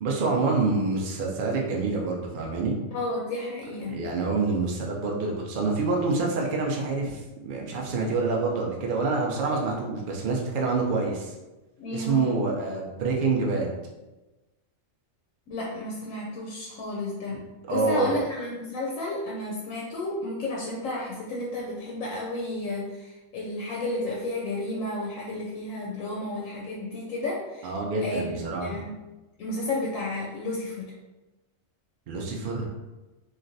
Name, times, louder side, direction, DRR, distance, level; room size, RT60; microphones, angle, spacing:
voice 1, 0.0-2.8 3.9-11.3 11.9-13.7 17.3-18.2 27.6-28.8 32.1-32.7, right 3 dB, 70° right, -1 dB, 0.5 m, -27 dB
voice 2, 2.9-4.0 11.8-12.3 15.5-17.4 17.7-27.7 28.0-28.9 29.4-30.9, left 2 dB, 80° left, -3 dB, 1.0 m, -32 dB
3.0 x 2.4 x 2.6 m, 1.1 s
omnidirectional pair, 1.4 m